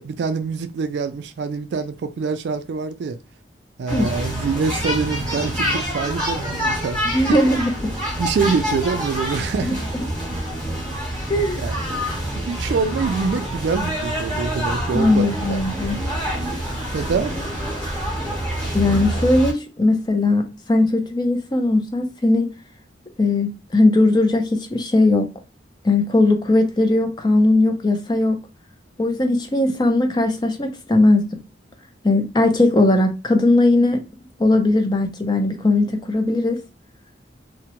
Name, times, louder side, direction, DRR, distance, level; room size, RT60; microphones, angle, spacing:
voice 1, 0.0-3.2 3.8-7.3 8.1-9.8 11.6-11.7 12.4-15.6 16.9-17.3, right 5 dB, 65° right, 0.3 m, -25 dB
sound 1, 3.9-19.5, equal, 5° left, 1.0 m, -26 dB
voice 2, 7.1-7.9 9.6-9.8 11.3-11.6 14.9-16.0 18.7-22.5 23.2-25.3 25.8-28.4 29.0-31.2 32.0-34.0 34.4-36.6, left 2 dB, 20° left, 0.4 m, -18 dB
2.7 x 2.1 x 2.9 m
head